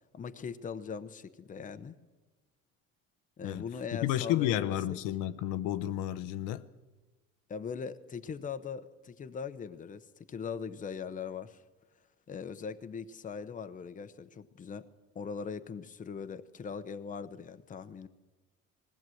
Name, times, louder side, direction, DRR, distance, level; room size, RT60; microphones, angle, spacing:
voice 1, 0.1-2.0 3.4-5.0 7.5-11.6 12.3-14.9 15.1-18.1, left 6 dB, 25° left, 0.8 m, -40 dB
voice 2, 3.4-6.6, left 13 dB, 85° left, 0.8 m, -32 dB
20.0 x 16.5 x 7.8 m
cardioid pair, 135°, 31 cm